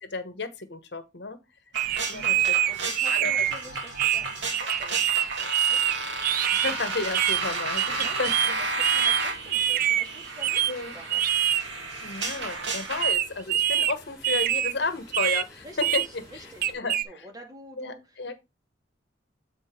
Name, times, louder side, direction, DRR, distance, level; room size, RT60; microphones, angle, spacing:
voice 1, 0.0-1.4 2.1-2.4 3.1-3.3 6.5-8.5 10.7-10.9 12.0-16.5 16.7-17.0 17.8-18.4, left 3 dB, 65° left, 1.1 m, -32 dB
sound 1, 1.7-3.5 4.0-6.7 7.1-7.4 7.8-8.5 8.8-10.0 10.4-10.7 11.1-11.6 13.0-13.9 14.2-14.7 15.1-15.4 15.8-16.1 16.6-17.0, right 11 dB, 50° right, 0.4 m, -25 dB
sound 2, 1.7-13.1, right 3 dB, 75° right, 1.9 m, -32 dB
voice 2, 2.1-5.9 7.8-11.3 15.6-16.7 17.0-18.4, right 1 dB, 20° right, 2.1 m, -48 dB
sound 3, 5.7-16.7, left 1 dB, 15° left, 5.6 m, -51 dB
7.9 x 4.4 x 4.5 m
head